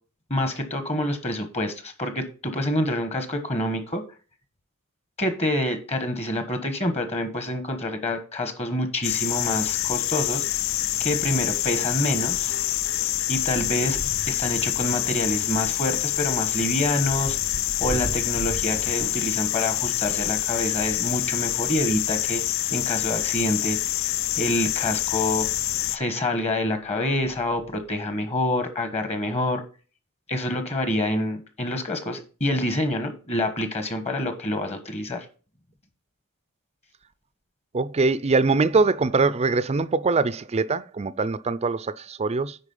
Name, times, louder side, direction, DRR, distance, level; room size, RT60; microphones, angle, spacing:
voice 1, 0.3-4.0 5.2-10.4 11.0-12.6 13.3-14.0 14.3-17.4 17.8-22.4 22.7-23.8 24.4-25.5 25.9-29.6 30.3-35.2, left 1 dB, 30° left, 1.2 m, -27 dB
sound 1, 9.0-26.0, left 14 dB, 65° left, 0.4 m, -26 dB
sound 2, 12.3-20.4 21.2-22.5 23.2-23.3 23.5-23.6 25.3-25.4 26.1-26.4 26.7-28.0, equal, 90° left, 1.6 m, -41 dB
voice 2, 37.7-42.6, right 4 dB, 30° right, 0.4 m, -23 dB
9.9 x 4.2 x 5.5 m
head